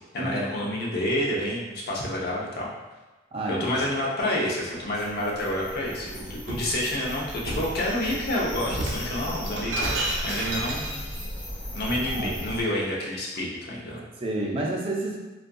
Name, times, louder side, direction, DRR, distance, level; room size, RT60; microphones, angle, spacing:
voice 1, 0.1-2.7 3.5-11.1 11.7-14.1, left 1 dB, 60° left, -4 dB, 0.6 m, -29 dB
voice 2, 3.3-3.8 12.1-12.4 14.2-15.2, right 2 dB, 30° right, -2 dB, 0.4 m, -30 dB
sound 1, 4.8-12.6, equal, 10° left, 0.7 m, -37 dB
Shatter, 5.9-6.7 7.5-7.8 8.6-11.3, right 1 dB, 85° right, 0.5 m, -31 dB
2.6 x 2.4 x 2.2 m, 1.2 s
head